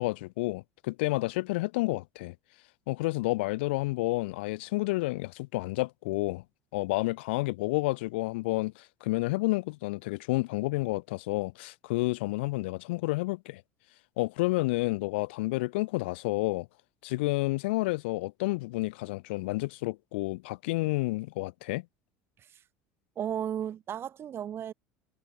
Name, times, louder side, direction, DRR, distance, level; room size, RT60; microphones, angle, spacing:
voice 1, 0.0-2.3 2.9-6.4 6.7-13.6 14.2-16.7 17.0-21.8, left 22 dB, 80° left, 0.7 m, -30 dB
voice 2, 23.2-24.7, right 9 dB, 40° right, 2.1 m, -34 dB
hypercardioid pair, 85°, 6 cm